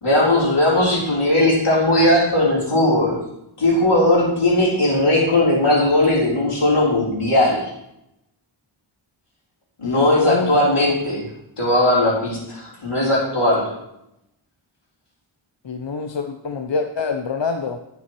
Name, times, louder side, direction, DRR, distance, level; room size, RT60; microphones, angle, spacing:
voice 1, 0.0-3.2 3.6-7.7 9.8-11.3 11.6-13.7, left 1 dB, 85° left, -5 dB, 3.9 m, -18 dB
voice 2, 9.8-10.5 15.6-17.8, left 4 dB, 60° left, 6 dB, 0.8 m, -26 dB
17.0 x 7.0 x 3.1 m, 0.83 s
wide cardioid pair, 45°, 49 cm